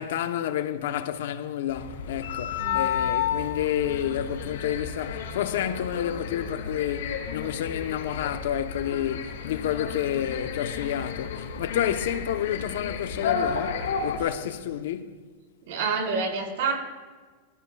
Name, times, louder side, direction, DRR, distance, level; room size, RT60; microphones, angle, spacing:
voice 1, 0.0-15.2, left 10 dB, 70° left, 0.9 m, -30 dB
sound 1, 1.7-14.2, left 7 dB, 85° left, 2.3 m, -32 dB
voice 2, 2.6-3.0 15.7-16.7, right 5 dB, 65° right, 4.7 m, -28 dB
22.0 x 16.0 x 2.4 m
supercardioid pair, 160°, 0 cm